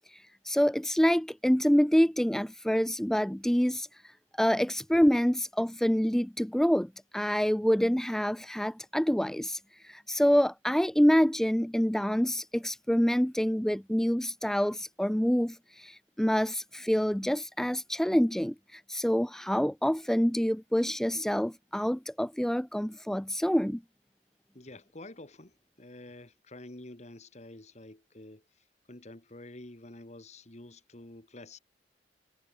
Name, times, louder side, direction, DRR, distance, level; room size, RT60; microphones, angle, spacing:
voice 1, 0.1-23.8, equal, 5° left, 0.4 m, -27 dB
voice 2, 24.5-28.4 28.9-31.6, left 2 dB, 40° left, 1.8 m, -48 dB
head